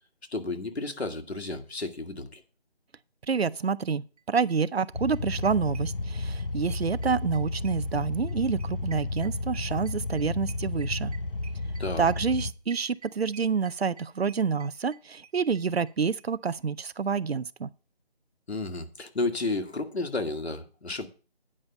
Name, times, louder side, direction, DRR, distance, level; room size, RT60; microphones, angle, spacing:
voice 1, 0.3-2.4 11.8-12.0 18.5-21.1, left 3 dB, 75° left, 1.7 m, -32 dB
voice 2, 3.3-11.1 12.0-17.7, right 5 dB, 70° right, 0.6 m, -28 dB
sound 1, 4.2-4.3 4.5-4.6 4.8-6.4 6.7-15.9 16.2-16.3 16.5-16.6 16.8-16.9, right 7 dB, 35° right, 1.1 m, -51 dB
sound 2, 4.9-12.5, left 2 dB, 55° left, 0.8 m, -32 dB
9.6 x 5.4 x 6.8 m
figure-of-eight pair, 180°, 32 cm